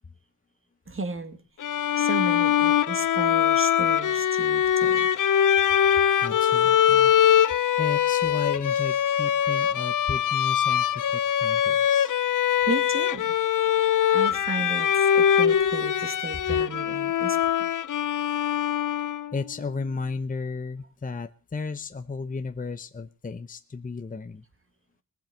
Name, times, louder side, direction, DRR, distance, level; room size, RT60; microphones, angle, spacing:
voice 1, 0.9-1.4 1.7-5.1 12.7-13.3 13.7-17.7, right 3 dB, 35° right, 8 dB, 2.0 m, -34 dB
Bowed string instrument, 1.6-19.4, left 9 dB, 60° left, 0.6 m, -22 dB
voice 2, 6.2-12.1 19.3-24.4, left 4 dB, 25° left, 10 dB, 0.7 m, -34 dB
19.5 x 7.5 x 6.8 m, 0.43 s
wide cardioid pair, 90°, 36 cm